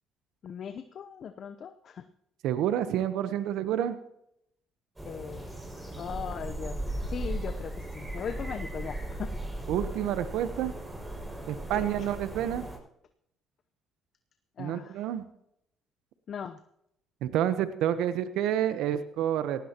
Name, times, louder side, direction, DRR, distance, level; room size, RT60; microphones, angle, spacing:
voice 1, 0.4-2.0 5.0-5.7 6.0-6.8 7.1-9.3 11.7-12.1 14.6-15.1 16.3-16.6, left 7 dB, 55° left, 9 dB, 0.8 m, -39 dB
voice 2, 2.4-4.0 9.7-10.7 11.5-12.6 14.6-15.2 17.2-19.7, right 10 dB, 75° right, 11 dB, 0.9 m, -29 dB
sound 1, 5.0-12.8, right 1 dB, 15° right, 6.1 m, -37 dB
18.0 x 16.5 x 3.0 m, 0.76 s
supercardioid pair, 70°, 0 cm